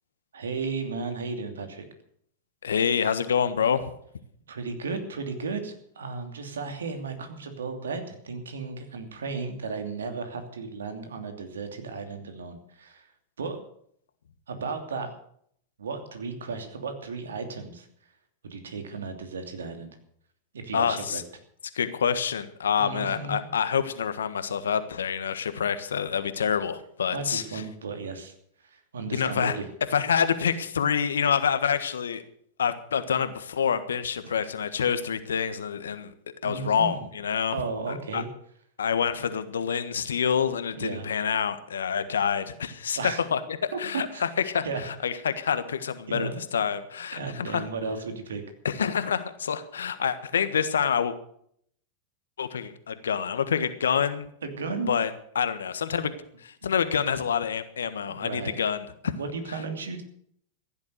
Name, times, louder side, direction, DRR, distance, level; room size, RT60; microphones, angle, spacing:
voice 1, 0.3-1.8 4.5-13.1 13.4-13.6 14.5-15.1 15.8-17.9 18.4-19.9 20.5-21.2 22.8-23.5 27.1-28.3 28.6-29.7 34.2-34.5 36.4-37.1 37.5-38.3 40.7-41.1 43.0-43.2 43.7-44.2 44.6-44.9 46.1-46.4 47.1-48.4 54.4-54.9 58.0-58.5 59.0-60.0, right 4 dB, 80° right, 6 dB, 2.8 m, -34 dB
voice 2, 2.6-3.9 20.7-21.2 21.7-27.6 29.1-29.6 29.9-32.2 32.6-36.1 36.4-37.5 37.9-38.2 38.8-43.0 43.3-47.6 48.6-51.2 52.4-54.3 54.9-56.1 56.4-59.1, left 7 dB, 80° left, 11 dB, 1.4 m, -27 dB
15.5 x 11.5 x 6.6 m, 0.67 s
hypercardioid pair, 95°, 0 cm